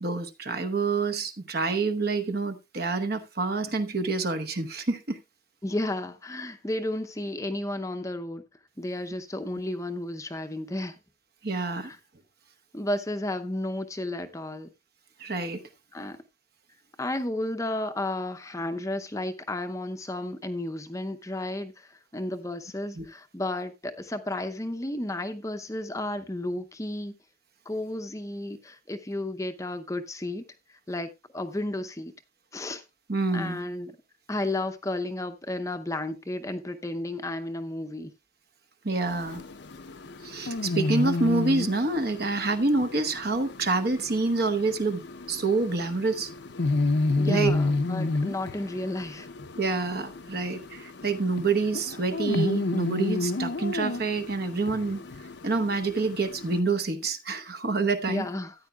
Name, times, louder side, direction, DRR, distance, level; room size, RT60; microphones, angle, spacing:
voice 1, 0.0-5.2 11.4-11.9 15.2-15.6 23.0-23.1 33.1-33.6 38.8-39.4 40.2-45.0 45.3-46.3 47.3-47.5 49.6-55.0 55.4-58.3, right 3 dB, 50° right, 1.0 m, -27 dB
voice 2, 5.6-8.4 8.8-11.0 11.8-12.0 12.7-14.7 15.9-16.2 17.0-27.1 27.7-30.4 30.7-32.1 32.5-32.8 33.3-34.0 34.3-38.1 47.2-49.3 58.1-58.5, left 1 dB, 15° left, 0.6 m, -33 dB
sound 1, 39.1-56.6, left 3 dB, 60° left, 0.6 m, -31 dB
14.0 x 9.3 x 2.3 m
head